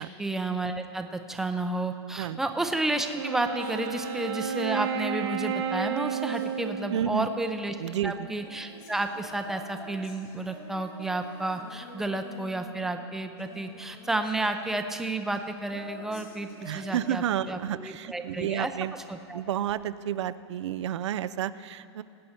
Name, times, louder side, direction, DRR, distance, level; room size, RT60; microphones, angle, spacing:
voice 1, 0.0-18.7 19.1-19.4, right 2 dB, 5° right, 6 dB, 0.5 m, -31 dB
Female singing, 2.8-18.1 19.7-19.8, left 2 dB, 40° left, 2.4 m, -48 dB
Wind instrument woodwind instrument, 3.1-7.7, right 6 dB, 65° right, 0.8 m, -32 dB
voice 2, 6.9-7.3 7.8-8.3 16.6-19.0 19.3-22.0, right 10 dB, 85° right, 15 dB, 0.4 m, -31 dB
18.5 x 8.5 x 4.4 m, 2.5 s
supercardioid pair, 145°, 14 cm